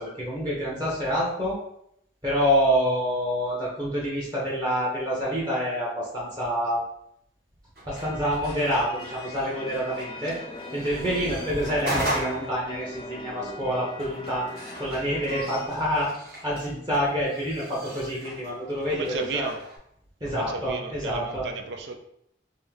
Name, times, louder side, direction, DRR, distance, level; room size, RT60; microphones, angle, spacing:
voice 1, 0.0-1.6 2.2-6.8 7.9-10.4 10.7-14.5 14.8-16.1 16.4-19.5 20.2-21.5, equal, 25° right, -5 dB, 0.8 m, -27 dB
sound 1, 7.7-19.8, right 1 dB, 55° right, 1.5 m, -38 dB
sound 2, 7.9-15.7, left 1 dB, 30° left, 0.4 m, -40 dB
voice 2, 18.9-19.6 20.3-21.9, right 4 dB, 80° right, 5 dB, 0.5 m, -33 dB
3.6 x 2.6 x 3.4 m, 0.73 s
head